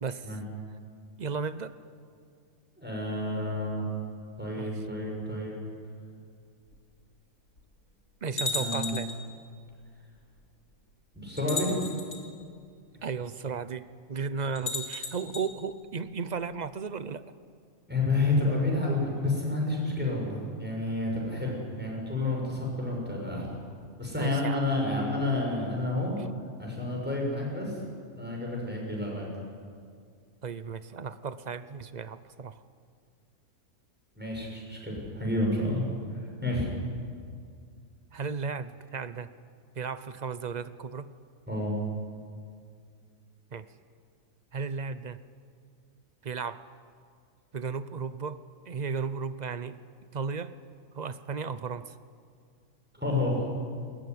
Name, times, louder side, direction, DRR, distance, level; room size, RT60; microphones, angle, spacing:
voice 1, 0.0-0.3 1.2-1.7 4.5-4.7 8.2-9.1 13.0-17.2 24.2-24.6 30.4-32.6 38.1-39.3 39.7-41.1 43.5-43.7 44.5-45.2 46.2-46.6 47.5-49.8 50.1-50.5 50.9-51.9, right 5 dB, 40° right, 13 dB, 0.7 m, -35 dB
voice 2, 2.8-3.8 4.4-5.6 8.3-8.9 11.1-11.7 17.9-23.5 24.0-26.1 26.6-27.8 28.2-29.3 34.2-35.8 36.1-36.7 41.5-41.7 53.0-53.5, left 2 dB, 5° right, -2 dB, 6.7 m, -30 dB
sound 1, 6.7-6.8 7.6-7.7 8.4-9.2 10.4-10.5 11.4-12.2 14.6-15.5, left 3 dB, 80° left, 3.7 m, -34 dB
21.5 x 20.0 x 9.7 m, 2.2 s
omnidirectional pair, 1.5 m